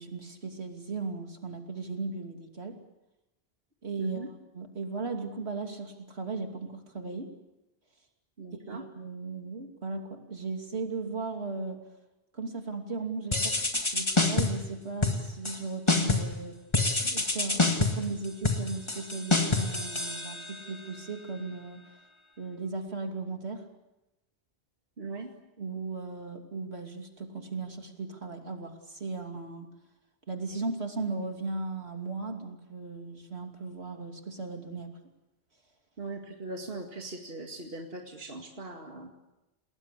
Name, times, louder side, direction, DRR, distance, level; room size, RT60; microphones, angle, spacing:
voice 1, 0.0-2.7 3.8-7.3 8.5-11.8 12.3-16.5 17.0-21.8 22.4-23.6 25.6-29.7 30.3-34.9, right 3 dB, 85° right, 3 dB, 3.2 m, -37 dB
voice 2, 4.0-4.3 8.4-8.8 25.0-25.3 36.0-39.1, right 2 dB, 65° right, 2 dB, 2.5 m, -40 dB
sound 1, 13.3-14.7 15.0-15.6 15.9-16.4 16.7-20.7, left 3 dB, 25° left, 2.1 m, -27 dB
29.5 x 19.5 x 8.5 m, 0.98 s
omnidirectional pair, 1.1 m